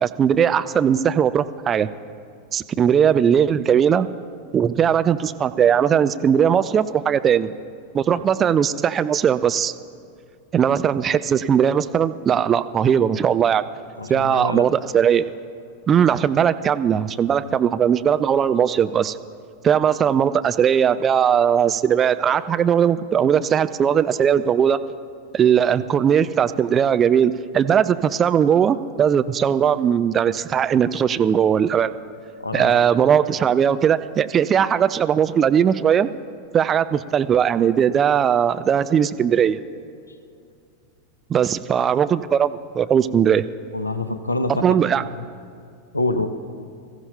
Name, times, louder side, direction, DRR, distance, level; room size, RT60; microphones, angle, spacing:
voice 1, 0.0-1.9 2.5-4.1 4.5-7.5 7.9-9.7 10.5-13.6 14.1-15.3 15.9-19.2 19.6-24.8 25.3-31.9 32.5-36.1 36.5-39.6 41.3-43.5 44.6-45.0, right 8 dB, 25° right, 12 dB, 0.4 m, -19 dB
voice 2, 14.0-14.7 17.4-17.5 32.4-32.9 43.7-44.8 45.2-45.3 45.9-46.3, left 2 dB, 80° left, 9 dB, 0.7 m, -26 dB
23.5 x 14.5 x 2.3 m, 2.3 s
figure-of-eight pair, 90°, 0 cm